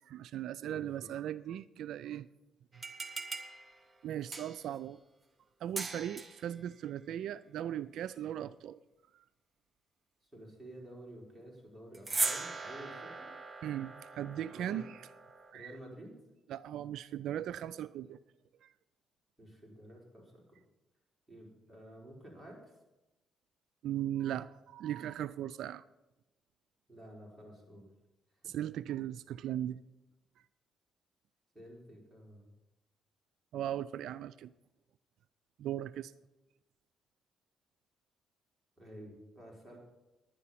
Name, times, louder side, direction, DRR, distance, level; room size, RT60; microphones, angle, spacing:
voice 1, 0.0-2.3 4.0-5.0 5.6-8.8 9.1-9.2 13.6-15.0 15.5-15.7 16.5-18.2 18.6-18.7 23.8-25.8 28.4-29.8 33.5-34.5 35.6-36.1, right 11 dB, 75° right, 15 dB, 0.3 m, -38 dB
voice 2, 0.6-1.1 10.2-13.3 14.5-14.9 15.5-16.1 19.4-20.6 21.3-22.8 26.9-27.9 31.5-32.4 38.8-39.8, right 1 dB, 10° right, -3 dB, 4.7 m, -51 dB
sound 1, 2.7-4.8 5.8-6.5 11.9-15.5, right 3 dB, 25° right, 1.0 m, -39 dB
11.0 x 10.0 x 5.8 m, 1.0 s
cardioid pair, 90°, 0 cm